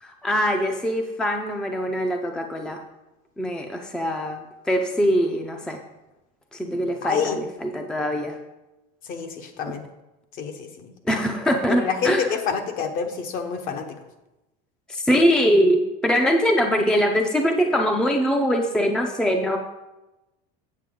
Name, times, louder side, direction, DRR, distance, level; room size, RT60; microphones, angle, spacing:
voice 1, 0.0-2.8 3.4-5.8 6.5-8.4 9.7-9.8 11.1-12.3 14.9-19.6, equal, 5° left, 3 dB, 0.5 m, -22 dB
voice 2, 7.0-7.4 9.1-9.8 10.4-10.9 11.7-14.0, left 6 dB, 45° left, 6 dB, 1.0 m, -27 dB
8.4 x 6.9 x 3.7 m, 1.0 s
cardioid pair, 140°, 19 cm